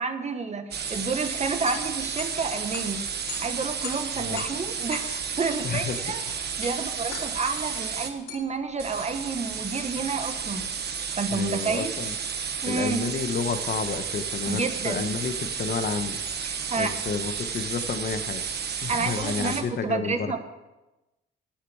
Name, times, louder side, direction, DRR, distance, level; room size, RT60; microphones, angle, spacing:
voice 1, 0.0-3.0 3.4-6.2 6.6-10.7 11.2-11.9 12.6-13.1 14.5-15.0 16.4-16.9 18.9-20.4, right 4 dB, 35° right, 8 dB, 1.2 m, -30 dB
sound 1, 0.7-8.1 8.8-19.6, right 6 dB, 55° right, 1.3 m, -32 dB
sound 2, 1.2-10.3, left 7 dB, 75° left, 4.3 m, -43 dB
voice 2, 5.6-6.0 11.3-12.1 12.7-16.2 16.8-18.4 18.8-20.3, left 5 dB, 50° left, 9 dB, 1.0 m, -30 dB
9.8 x 6.6 x 8.5 m, 1.0 s
cardioid pair, 90°, 20 cm